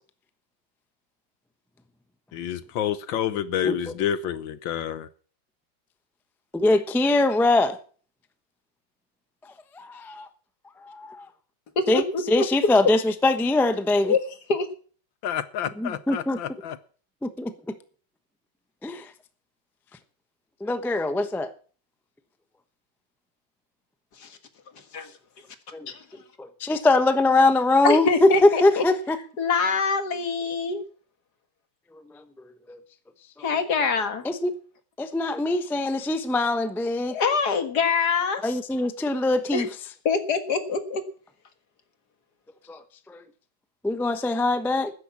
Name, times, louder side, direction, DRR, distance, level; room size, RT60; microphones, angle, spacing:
voice 1, 2.3-5.1 15.2-16.8, left 9 dB, 70° left, 14 dB, 1.5 m, -29 dB
voice 2, 6.5-7.8 9.8-10.3 10.9-11.3 11.9-14.1 15.8-16.4 17.2-17.5 18.8-19.1 20.6-21.5 25.7-25.9 26.4-29.2 32.7-32.8 34.2-34.5 35.0-37.2 38.4-39.7 42.7-42.8 43.1-43.2 43.8-44.9, left 2 dB, 5° left, 9 dB, 0.3 m, -22 dB
voice 3, 11.8-12.5 14.0-14.2 14.5-14.7 24.2-24.4 24.9-25.1 25.9-26.0 27.8-28.8 29.4-30.8 33.4-34.3 37.1-38.4 39.5-39.6 40.1-41.0, left 4 dB, 55° left, 8 dB, 2.1 m, -24 dB
12.0 x 10.5 x 7.1 m, 0.43 s
omnidirectional pair, 2.2 m